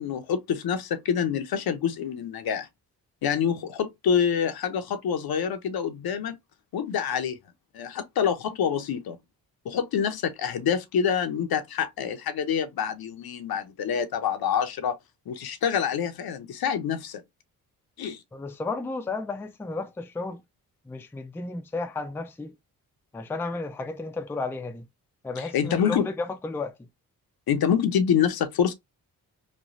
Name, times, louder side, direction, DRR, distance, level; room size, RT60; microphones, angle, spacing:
voice 1, 0.0-2.7 3.2-6.4 6.7-7.4 7.7-9.2 9.6-15.0 15.3-17.2 18.0-18.2 25.4-26.1 27.5-28.7, left 8 dB, 65° left, 0.6 m, -26 dB
voice 2, 18.3-20.4 20.9-22.5 23.1-24.9 25.2-26.9, left 3 dB, 5° left, 0.4 m, -33 dB
3.1 x 2.2 x 2.5 m
cardioid pair, 60°, 40 cm